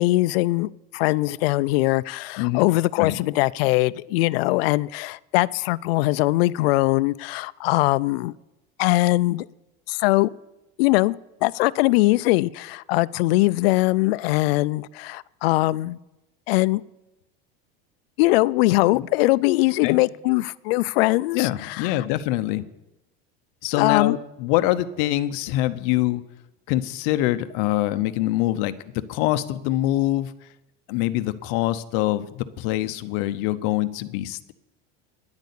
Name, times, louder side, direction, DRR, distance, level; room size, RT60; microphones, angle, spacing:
voice 1, 0.0-8.3 8.8-9.5 9.9-10.3 10.8-11.2 11.4-16.0 16.5-16.8 18.2-22.0 23.7-24.2, left 20 dB, 90° left, 19 dB, 0.5 m, -21 dB
voice 2, 2.4-2.7 3.0-3.2 18.9-19.1 19.8-20.0 21.3-22.6 23.6-26.2 26.7-28.7 29.1-30.3 30.9-34.5, left 15 dB, 60° left, 13 dB, 0.8 m, -24 dB
10.5 x 8.3 x 8.3 m, 0.94 s
cardioid pair, 165°, 29 cm